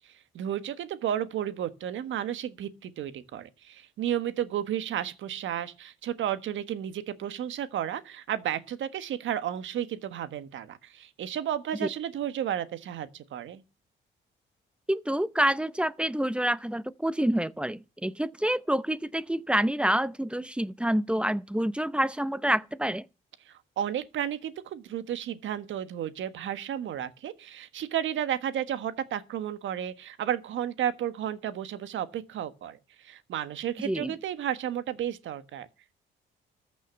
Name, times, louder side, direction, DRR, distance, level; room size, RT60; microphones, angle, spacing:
voice 1, 0.3-13.6 23.4-35.7, right 10 dB, 75° right, 1.5 m, -32 dB
voice 2, 14.9-23.0 33.8-34.1, right 1 dB, 5° right, 0.7 m, -27 dB
14.0 x 6.2 x 7.1 m
cardioid pair, 90°, 20 cm